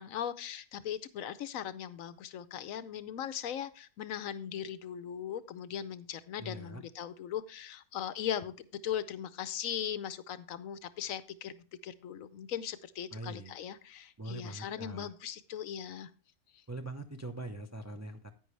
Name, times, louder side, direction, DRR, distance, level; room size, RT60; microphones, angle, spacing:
voice 1, 0.0-16.1 16.5-16.6, left 9 dB, 70° left, 14 dB, 1.0 m, -39 dB
voice 2, 6.4-6.8 13.1-13.5 14.2-15.1 16.7-18.3, right 2 dB, 15° right, 5 dB, 0.5 m, -42 dB
10.0 x 9.3 x 3.2 m, 0.36 s
omnidirectional pair, 1.5 m